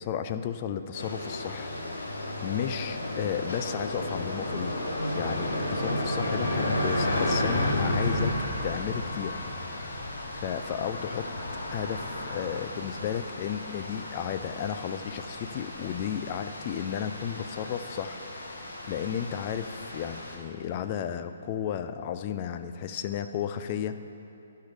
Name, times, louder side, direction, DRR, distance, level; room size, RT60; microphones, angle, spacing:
voice 1, 0.0-1.7 2.1-4.8 5.1-8.3 8.6-9.9 10.3-11.3 11.7-24.0, left 9 dB, 35° left, 9 dB, 0.4 m, -33 dB
sound 1, 0.9-20.4, left 1 dB, 85° left, 1.2 m, -32 dB
11.5 x 4.6 x 5.1 m, 2.9 s
hypercardioid pair, 145°, 0 cm